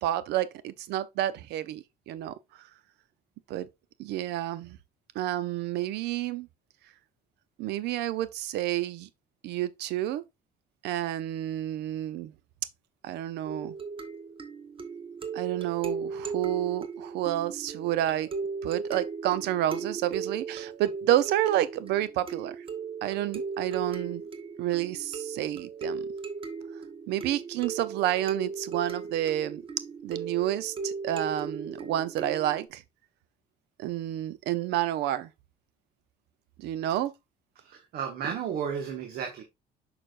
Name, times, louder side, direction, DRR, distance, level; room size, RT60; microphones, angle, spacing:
voice 1, 0.0-2.3 3.5-3.7 4.0-4.8 5.1-6.5 7.6-9.1 9.4-10.2 10.8-12.3 13.0-13.7 15.3-18.3 18.6-22.6 23.0-24.2 24.6-26.0 27.1-29.6 30.0-32.8 33.8-35.3 36.6-37.1, right 13 dB, 80° right, 0.7 m, -29 dB
sound 1, 13.5-32.7, right 5 dB, 30° right, 1.2 m, -37 dB
voice 2, 37.6-39.4, right 7 dB, 65° right, 1.5 m, -33 dB
6.7 x 5.9 x 2.5 m
cardioid pair, 110°, 17 cm